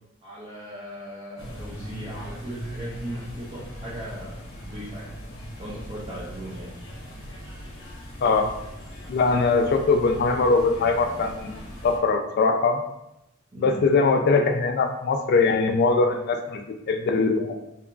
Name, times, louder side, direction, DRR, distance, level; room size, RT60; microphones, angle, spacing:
voice 1, 0.2-4.3 4.6-5.1 5.6-6.7 13.5-13.8, equal, 30° right, -8 dB, 0.5 m, -38 dB
sound 1, 1.4-12.0, equal, 85° left, 0.7 m, -39 dB
voice 2, 9.1-12.8 13.6-17.6, left 4 dB, 50° left, 6 dB, 0.3 m, -22 dB
2.9 x 2.3 x 2.3 m, 0.86 s
head